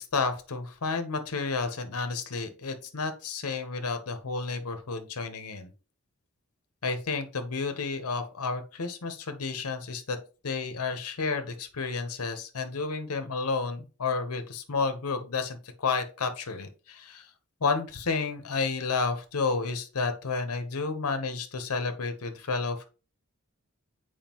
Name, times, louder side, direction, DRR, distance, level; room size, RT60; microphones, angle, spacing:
voice 1, 0.0-5.7 6.8-10.2 10.4-17.3 17.6-22.8, left 4 dB, 90° left, 7 dB, 0.9 m, -31 dB
7.3 x 4.8 x 2.9 m, 0.34 s
head